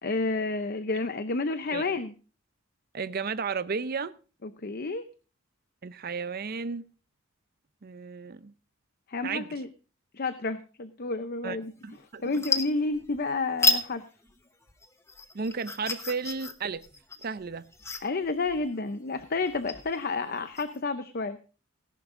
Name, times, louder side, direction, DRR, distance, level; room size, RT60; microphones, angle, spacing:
voice 1, 0.0-2.1 4.4-5.1 9.1-9.7 10.1-11.7 12.2-14.0 18.0-21.4, left 3 dB, 45° left, 0.7 m, -30 dB
voice 2, 2.9-4.1 5.8-6.8 7.8-8.5 9.2-9.6 11.4-11.6 11.8-12.4 15.3-16.8 17.2-17.7, right 5 dB, 45° right, 0.6 m, -33 dB
sound 1, 11.7-12.0 12.3-13.2 13.6-13.9 14.2-20.8, left 2 dB, 15° left, 1.0 m, -31 dB
18.0 x 11.0 x 2.6 m
head